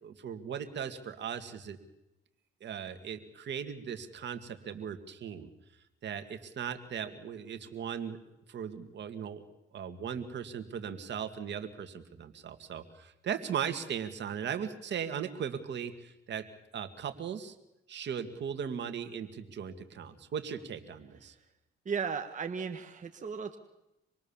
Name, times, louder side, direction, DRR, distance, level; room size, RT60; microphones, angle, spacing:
voice 1, 0.0-1.8 2.6-5.5 6.0-8.2 8.5-9.4 9.7-16.5 16.7-17.6 17.9-21.3, right 8 dB, 65° right, 9 dB, 2.4 m, -38 dB
voice 2, 21.8-23.6, right 6 dB, 40° right, 6 dB, 1.7 m, -35 dB
26.5 x 21.5 x 7.4 m, 0.91 s
cardioid pair, 90°, 20 cm